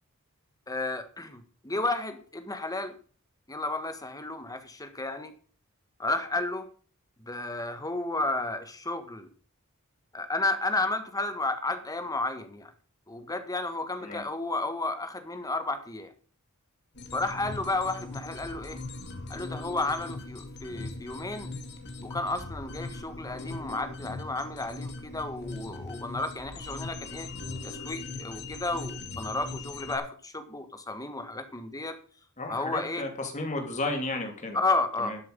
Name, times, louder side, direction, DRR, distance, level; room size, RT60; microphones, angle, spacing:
voice 1, 0.7-2.9 3.5-5.3 6.0-6.7 7.2-9.3 10.1-12.7 13.1-16.1 17.1-18.8 19.3-21.5 22.0-27.3 27.6-32.0 32.5-33.0 34.5-35.1, left 2 dB, 15° left, 8 dB, 1.6 m, -32 dB
sound 1, 17.0-30.0, left 3 dB, 55° left, 2.3 m, -40 dB
voice 2, 32.4-34.6 35.0-35.2, left 2 dB, 35° left, 3 dB, 3.0 m, -33 dB
12.5 x 7.8 x 5.4 m, 0.42 s
head